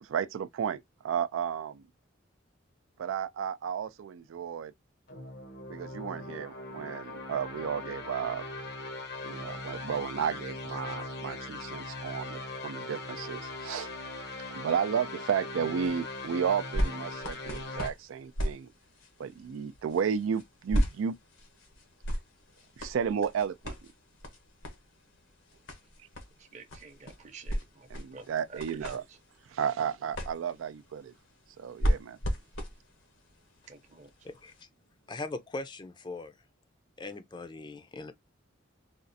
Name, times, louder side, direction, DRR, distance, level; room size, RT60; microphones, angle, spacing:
voice 1, 0.1-1.8 3.0-4.7 5.7-8.4 9.2-13.9 14.6-18.7 19.2-21.2 22.8-23.7 27.9-29.0 29.5-31.1 31.6-32.2, right 7 dB, 85° right, 0.3 m, -33 dB
sound 1, 5.1-17.9, left 2 dB, 55° left, 0.7 m, -40 dB
sound 2, 15.8-34.6 35.3-35.4, equal, 85° left, 1.1 m, -37 dB
voice 2, 26.4-29.2 33.7-34.1, right 4 dB, 35° right, 0.7 m, -51 dB
voice 3, 34.2-34.7 35.1-36.3 37.0-38.1, left 2 dB, 25° left, 0.4 m, -40 dB
4.2 x 2.4 x 2.6 m
head